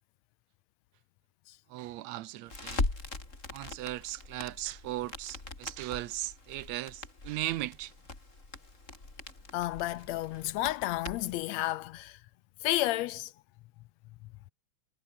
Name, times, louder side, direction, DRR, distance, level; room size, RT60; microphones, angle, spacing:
voice 1, 1.7-2.9 3.5-7.9, right 16 dB, 75° right, 1.9 m, -37 dB
Crackle, 2.5-11.4, left 2 dB, 25° left, 4.3 m, -40 dB
voice 2, 9.5-12.2 12.6-13.3, left 15 dB, 80° left, 1.8 m, -31 dB
omnidirectional pair, 3.3 m